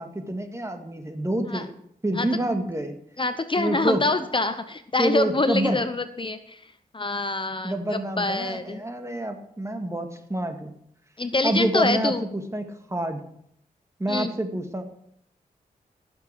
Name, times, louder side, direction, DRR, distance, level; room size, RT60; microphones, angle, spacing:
voice 1, 0.0-1.7 2.0-2.9 3.6-4.0 5.0-5.8 7.6-10.7 11.4-13.2 14.0-14.8, right 1 dB, 20° right, 6 dB, 1.8 m, -27 dB
voice 2, 3.2-6.6 6.9-8.8 11.2-12.2 14.1-14.3, left 2 dB, 35° left, 10 dB, 0.8 m, -26 dB
15.0 x 7.1 x 4.7 m, 0.71 s
cardioid pair, 55°, 16 cm